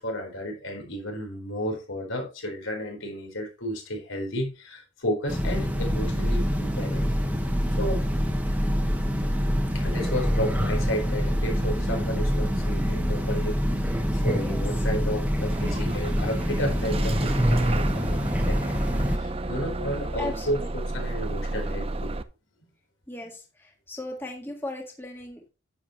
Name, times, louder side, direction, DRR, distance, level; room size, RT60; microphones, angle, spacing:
voice 1, 0.0-7.1 7.8-8.1 9.7-22.2 23.2-23.3, equal, 85° left, 4.3 m, -33 dB
Train, 5.3-19.2, equal, 5° right, 1.3 m, -25 dB
voice 2, 14.3-14.6 20.2-20.7 23.1-25.4, left 2 dB, 10° left, 1.7 m, -37 dB
Bus / Engine starting, 15.5-22.2, right 2 dB, 30° right, 0.5 m, -32 dB
10.0 x 7.9 x 3.1 m
head